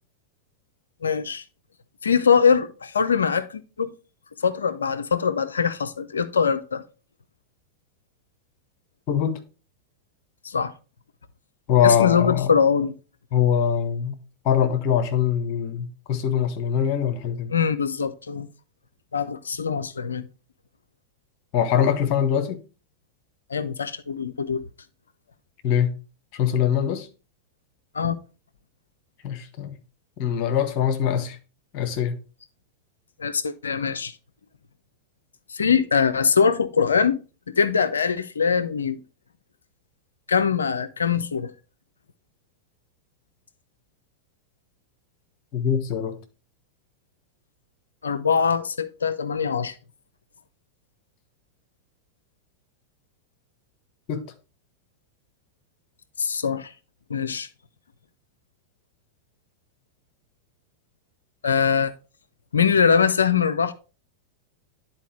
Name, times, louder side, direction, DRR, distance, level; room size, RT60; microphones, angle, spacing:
voice 1, 1.0-1.4 2.0-3.9 4.4-6.8 10.4-10.7 11.8-12.9 17.5-18.5 19.1-20.3 23.5-24.6 27.9-28.2 33.2-34.2 35.5-37.2 37.5-39.0 40.3-41.5 48.0-49.7 56.2-56.7 57.1-57.5 61.4-61.9 62.5-63.7, left 6 dB, 70° left, 0.5 m, -22 dB
voice 2, 9.1-9.4 11.7-12.5 13.3-14.1 14.4-17.5 21.5-22.6 25.6-25.9 26.3-27.1 29.2-29.7 30.2-31.4 31.7-32.2 45.5-46.2 54.1-54.2, left 8 dB, 45° left, 1.1 m, -23 dB
10.5 x 4.3 x 3.2 m
figure-of-eight pair, 90°, 0 cm